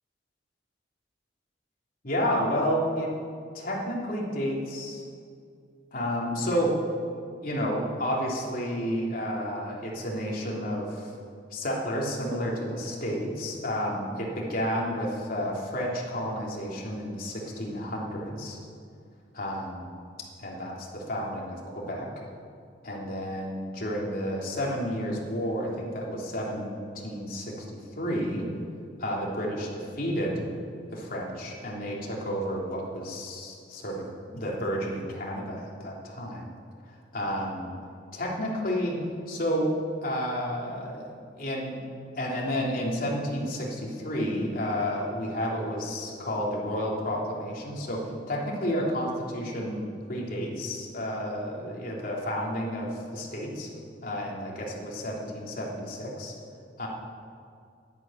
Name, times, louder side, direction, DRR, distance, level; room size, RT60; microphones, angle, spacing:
voice 1, 2.0-3.1 3.5-5.0 5.9-6.8 7.4-11.1 11.5-18.6 19.3-20.0 20.4-22.1 22.8-28.5 29.0-30.5 30.9-34.1 34.3-36.5 37.1-37.7 38.1-39.0 39.3-39.7 40.0-41.1 41.4-41.8 42.2-53.7 54.0-56.3 56.8-56.9, equal, 55° left, -3 dB, 3.3 m, -31 dB
12.0 x 10.5 x 9.0 m, 2.3 s
head